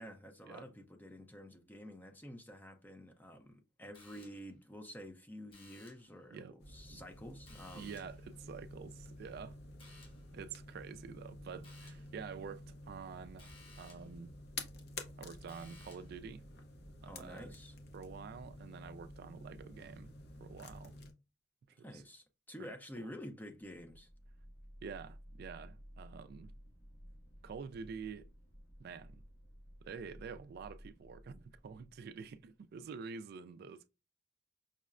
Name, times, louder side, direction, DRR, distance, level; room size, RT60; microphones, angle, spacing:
voice 1, 0.0-7.9 17.0-17.7 21.8-24.1, equal, 10° left, 0.5 m, -50 dB
sound 1, 3.9-4.6 5.5-6.2 7.5-8.3 9.8-10.3 11.6-12.2 13.4-14.2 15.5-16.2, left 3 dB, 30° left, 0.9 m, -60 dB
sound 2, 6.6-21.1, left 2 dB, 60° left, 0.7 m, -50 dB
voice 2, 7.7-9.6 10.3-14.3 15.2-16.5 17.0-17.5 17.9-20.1 20.4-20.9 21.7-22.0 23.0-23.1 24.8-26.5 27.4-28.3 28.8-29.2 29.8-33.9, right 6 dB, 55° right, 0.3 m, -48 dB
sound 3, 23.5-32.8, equal, 80° left, 1.2 m, -56 dB
5.5 x 2.1 x 2.4 m
head